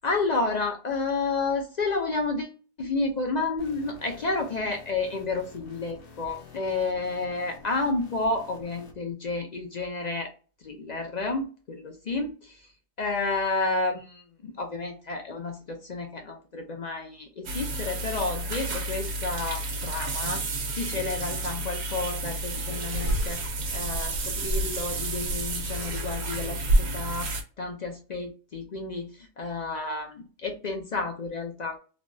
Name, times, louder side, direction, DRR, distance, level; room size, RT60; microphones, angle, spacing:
voice 1, 0.0-2.5 2.8-10.3 10.6-12.6 13.0-20.4 20.7-31.8, left 3 dB, 55° left, 3 dB, 0.5 m, -31 dB
sound 1, 3.6-8.9, left 4 dB, 75° left, 1.1 m, -49 dB
sound 2, 17.5-27.4, right 1 dB, 70° right, 1.0 m, -29 dB
3.4 x 2.5 x 2.2 m, 0.36 s
omnidirectional pair, 1.2 m